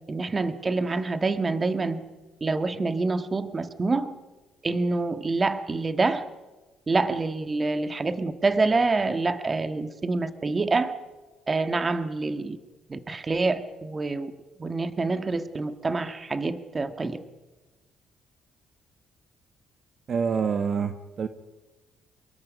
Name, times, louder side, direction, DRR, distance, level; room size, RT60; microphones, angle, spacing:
voice 1, 0.1-2.0 2.4-4.1 4.6-6.2 6.9-10.9 11.5-12.6 12.9-14.3 14.6-17.2, right 3 dB, 25° right, 10 dB, 1.5 m, -26 dB
voice 2, 20.1-21.3, right 6 dB, 50° right, 9 dB, 1.2 m, -26 dB
25.0 x 22.5 x 5.3 m, 1.2 s
cardioid pair, 100°, 0 cm